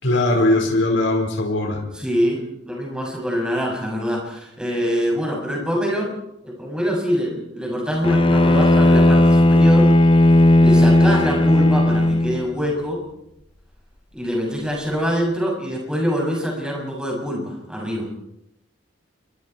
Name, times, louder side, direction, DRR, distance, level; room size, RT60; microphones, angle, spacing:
voice 1, 0.0-1.8, left 2 dB, 75° left, 2 dB, 4.9 m, -19 dB
voice 2, 1.9-6.1 6.4-9.9 10.6-13.0 14.1-18.1, equal, 5° right, -1 dB, 7.1 m, -24 dB
Bowed string instrument, 8.0-12.5, left 1 dB, 25° left, 0.8 m, -14 dB
29.0 x 23.5 x 4.6 m, 0.81 s
head